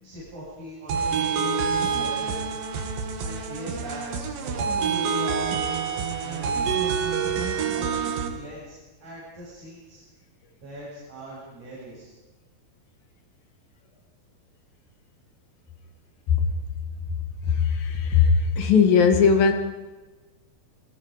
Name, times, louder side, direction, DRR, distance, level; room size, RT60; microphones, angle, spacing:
voice 1, 0.0-2.4 3.2-5.7 6.2-6.8 7.7-7.9 8.3-10.0 10.6-12.1, equal, 60° right, -7 dB, 9.3 m, -40 dB
sound 1, 0.9-8.3, right 6 dB, 80° right, 3.7 m, -27 dB
voice 2, 17.4-19.5, left 6 dB, 80° left, 5 dB, 4.0 m, -19 dB
28.5 x 22.0 x 5.2 m, 1.2 s
omnidirectional pair, 4.0 m